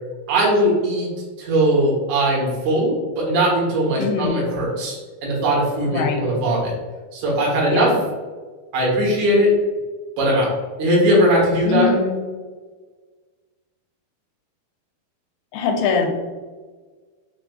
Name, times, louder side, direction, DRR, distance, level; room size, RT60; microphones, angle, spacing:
voice 1, 0.3-1.1 1.4-6.7 7.1-7.9 8.7-9.5 10.2-10.5 10.8-11.9, right 1 dB, 60° right, -5 dB, 2.5 m, -19 dB
voice 2, 4.0-4.4 5.8-6.3 7.7-8.0 11.6-12.2 15.5-16.1, left 5 dB, 85° left, 2 dB, 2.6 m, -22 dB
6.6 x 2.6 x 2.3 m, 1.4 s
omnidirectional pair, 4.5 m